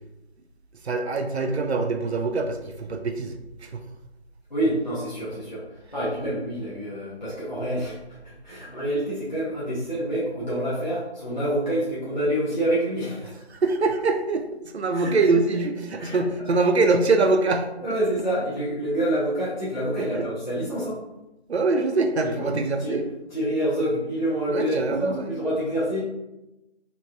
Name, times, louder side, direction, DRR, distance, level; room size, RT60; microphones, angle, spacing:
voice 1, 0.8-3.3 3.6-3.8 13.5-14.4 14.7-17.7 20.0-20.3 21.5-23.0 24.5-25.3, right 3 dB, 70° right, 5 dB, 0.5 m, -23 dB
voice 2, 4.5-5.6 5.9-13.4 14.9-15.2 16.0-16.2 16.5-16.6 17.8-21.0 22.2-23.0 23.3-26.0, right 1 dB, 40° left, -9 dB, 0.6 m, -27 dB
3.1 x 2.6 x 2.2 m, 0.94 s
figure-of-eight pair, 175°, 34 cm